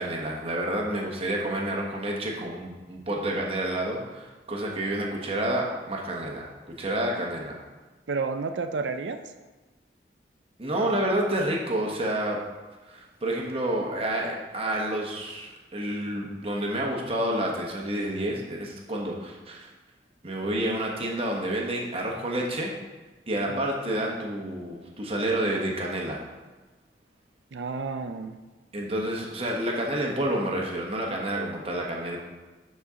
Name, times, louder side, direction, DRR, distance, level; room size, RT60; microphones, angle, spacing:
voice 1, 0.0-6.5 6.8-7.6 10.6-12.4 12.9-19.7 20.2-22.7 23.3-26.2 28.7-32.2, right 1 dB, 30° right, -1 dB, 1.1 m, -29 dB
voice 2, 8.1-9.2 23.5-23.6 27.5-28.4, right 4 dB, 75° right, 8 dB, 0.5 m, -31 dB
12.0 x 4.3 x 3.7 m, 1.2 s
head